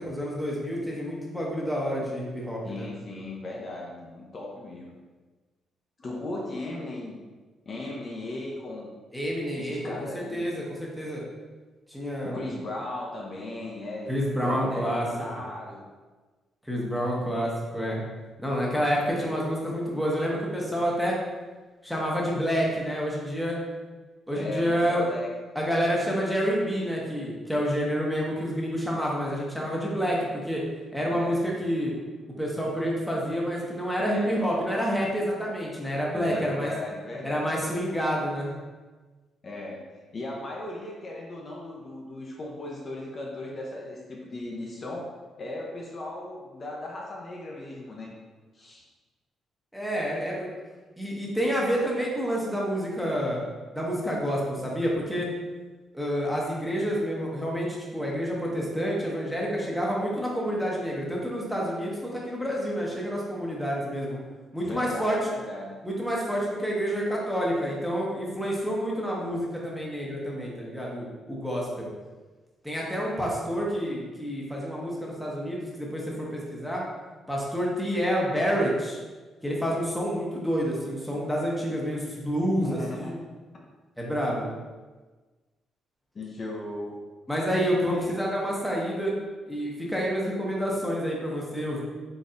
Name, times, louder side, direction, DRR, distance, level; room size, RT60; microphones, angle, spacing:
voice 1, 0.0-2.9 9.1-11.2 11.9-12.4 14.1-15.0 16.6-18.0 18.4-21.2 21.8-23.6 24.3-25.0 25.5-30.6 30.9-31.9 32.4-36.7 37.2-38.5 49.7-50.5 51.0-53.4 53.7-55.3 55.9-64.2 64.5-65.2 65.8-71.9 72.6-76.8 77.3-79.0 79.4-83.2 84.0-84.5 87.3-89.2 89.5-91.8, equal, ahead, -4 dB, 0.9 m, -28 dB
voice 2, 2.6-4.9 6.0-7.2 7.7-8.9 9.6-10.5 12.2-14.1 14.4-15.9 24.3-25.3 31.1-31.4 34.0-34.3 36.1-37.7 39.4-48.1 48.5-48.8 64.6-65.8 82.4-83.1 86.1-87.0 87.7-88.1, left 2 dB, 40° left, -3 dB, 0.7 m, -37 dB
4.0 x 3.3 x 2.5 m, 1.3 s
cardioid pair, 90°, 0 cm